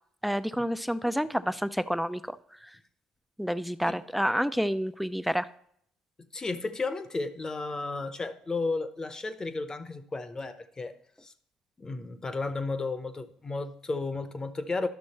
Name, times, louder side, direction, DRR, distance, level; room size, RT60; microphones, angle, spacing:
voice 1, 0.2-2.4 2.6-2.7 3.4-5.5, equal, ahead, 0.5 m, -29 dB
voice 2, 6.3-10.9 11.2-11.3 11.8-14.9, left 3 dB, 30° left, 0.9 m, -33 dB
11.5 x 6.1 x 4.3 m
supercardioid pair, 65°, 2 cm